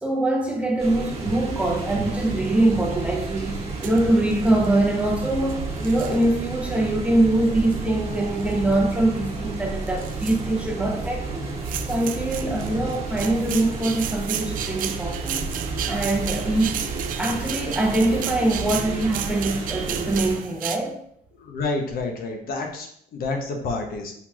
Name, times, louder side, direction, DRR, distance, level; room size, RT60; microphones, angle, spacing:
voice 1, 0.0-11.4 11.8-15.5 15.9-16.8 17.2-21.0, right 1 dB, 5° right, -1 dB, 0.9 m, -23 dB
Rainy Toronto, 0.8-20.4, right 3 dB, 35° right, 1.4 m, -32 dB
sound 1, 1.2-20.8, right 9 dB, 55° right, 0.4 m, -35 dB
voice 2, 21.4-24.1, left 3 dB, 60° left, 3 dB, 0.8 m, -29 dB
5.6 x 3.0 x 2.4 m, 0.69 s
cardioid pair, 110°, 17 cm